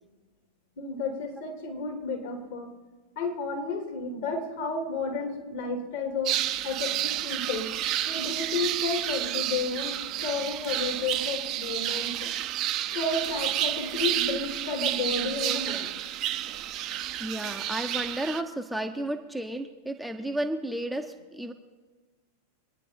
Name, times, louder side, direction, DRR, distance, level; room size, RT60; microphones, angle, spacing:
voice 1, 0.8-2.7 3.2-7.7 8.1-12.3 12.9-15.9, left 3 dB, 55° left, 2 dB, 2.8 m, -32 dB
sound 1, 6.3-18.4, right 12 dB, 35° right, 0.7 m, -30 dB
voice 2, 15.4-15.8 17.2-21.5, right 1 dB, ahead, 4 dB, 0.8 m, -33 dB
24.5 x 9.8 x 4.4 m, 1.4 s
figure-of-eight pair, 90°, 0 cm